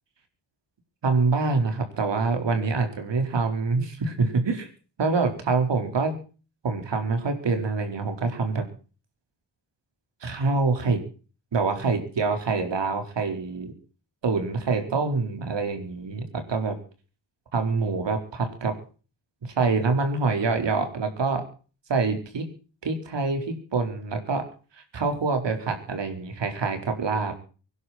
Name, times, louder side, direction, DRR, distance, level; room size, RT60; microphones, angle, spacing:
voice 1, 1.0-4.7 5.0-6.2 6.6-8.6 10.2-11.0 11.5-13.7 14.2-16.8 17.5-18.7 19.5-21.4 21.9-22.5 22.8-24.4 24.9-27.3, right 4 dB, 65° right, 6 dB, 4.5 m, -25 dB
24.5 x 11.5 x 4.3 m, 0.38 s
wide cardioid pair, 145°, 46 cm